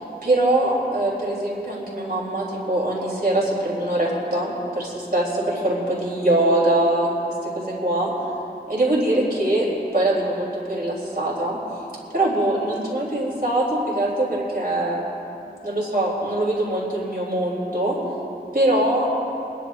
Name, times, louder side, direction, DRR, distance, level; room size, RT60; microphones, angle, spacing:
voice 1, 0.2-7.1 7.5-8.1 8.7-9.7 9.9-11.6 12.1-15.1 15.6-18.0 18.5-19.1, right 1 dB, 60° right, -5 dB, 3.4 m, -22 dB
25.5 x 11.0 x 2.6 m, 2.9 s
wide cardioid pair, 50°, 17 cm